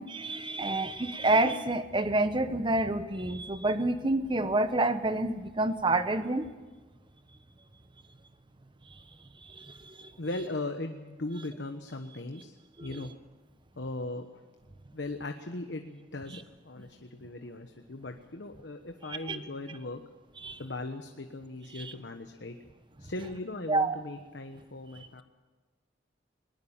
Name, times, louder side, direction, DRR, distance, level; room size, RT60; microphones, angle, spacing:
voice 1, 0.0-6.5 9.5-10.1 12.8-12.9 19.3-19.4 20.4-20.6 21.7-21.9 23.7-24.0, right 2 dB, 25° right, 10 dB, 1.1 m, -28 dB
voice 2, 10.2-12.5 12.8-13.1 13.7-14.4 14.9-20.0 20.6-22.6 23.0-25.2, left 2 dB, 65° left, 6 dB, 1.2 m, -38 dB
20.5 x 20.0 x 7.3 m, 1.3 s
head